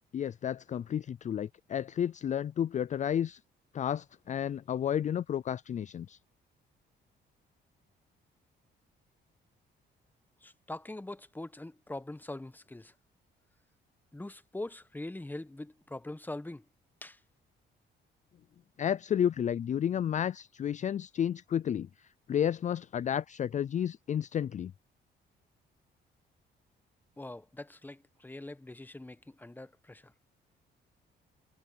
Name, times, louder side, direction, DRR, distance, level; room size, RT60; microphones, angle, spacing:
voice 1, 0.1-3.4 3.7-6.2 18.8-24.7, left 9 dB, 40° left, 0.4 m, -31 dB
voice 2, 10.4-12.9 14.1-16.6 17.0-17.2 27.2-30.1, left 2 dB, 10° left, 1.1 m, -43 dB
cardioid pair, 90°, 20 cm